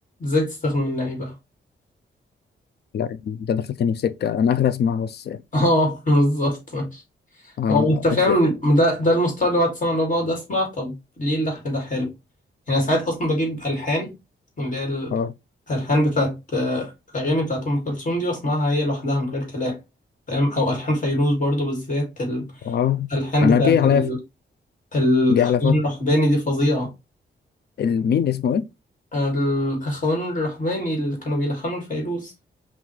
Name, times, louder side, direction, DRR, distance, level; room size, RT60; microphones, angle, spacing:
voice 1, 0.2-1.3 5.5-7.0 7.7-12.1 12.7-14.2 14.6-15.1 15.7-19.8 20.3-22.5 23.1-24.2 24.9-26.9 29.1-32.3, left 1 dB, 40° left, 2.0 m, -22 dB
voice 2, 2.9-5.4 7.6-8.4 15.1-15.3 22.6-23.1 23.4-24.2 25.3-25.9 27.8-28.7, left 8 dB, 55° left, 0.4 m, -22 dB
5.3 x 2.5 x 3.1 m
wide cardioid pair, 135°, 20 cm